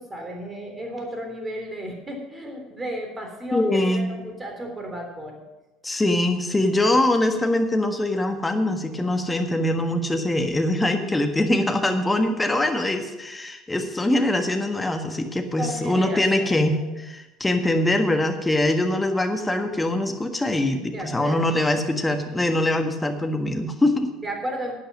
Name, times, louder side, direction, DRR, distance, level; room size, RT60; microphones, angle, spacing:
voice 1, 0.0-5.4 15.6-16.9 20.9-21.6 24.2-24.7, equal, 20° right, 3 dB, 3.4 m, -33 dB
voice 2, 3.5-4.1 5.8-24.1, left 1 dB, 10° left, 5 dB, 1.5 m, -23 dB
12.0 x 8.8 x 6.2 m, 1.1 s
figure-of-eight pair, 65°, 0 cm